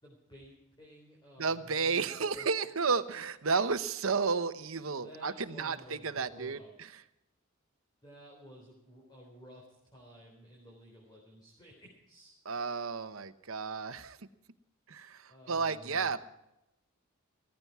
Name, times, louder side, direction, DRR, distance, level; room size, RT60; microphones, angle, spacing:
voice 1, 0.0-2.5 4.9-6.7 8.0-12.3 15.3-16.2, equal, 20° left, -2 dB, 3.9 m, -54 dB
voice 2, 1.4-7.0 12.5-14.2 14.9-16.2, right 5 dB, 80° right, 11 dB, 1.0 m, -32 dB
16.0 x 15.0 x 4.7 m, 0.85 s
head